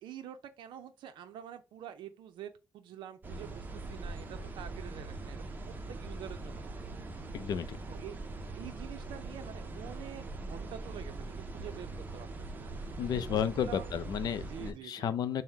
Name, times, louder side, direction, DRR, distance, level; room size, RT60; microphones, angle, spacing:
voice 1, 0.0-6.7 7.9-8.2 8.5-12.3 12.5-12.7 13.1-14.0 14.4-15.1, right 10 dB, 80° right, 0.5 m, -47 dB
sound 1, 3.2-14.7, right 2 dB, 25° right, 0.6 m, -42 dB
voice 2, 7.3-7.8 13.0-15.4, left 8 dB, 55° left, 0.4 m, -32 dB
5.6 x 2.1 x 4.5 m
cardioid pair, 165°, 8 cm